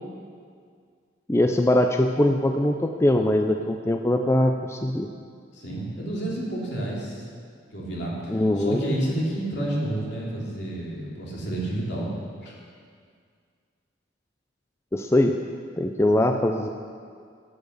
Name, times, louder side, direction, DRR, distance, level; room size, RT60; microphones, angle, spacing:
voice 1, 1.3-5.1 8.3-8.8 14.9-15.4 15.8-16.7, left 1 dB, 15° left, 5 dB, 0.4 m, -22 dB
voice 2, 5.5-7.2 7.7-12.1 12.4-12.5, right 1 dB, 65° left, -4 dB, 3.0 m, -30 dB
11.5 x 8.7 x 6.6 m, 2.1 s
head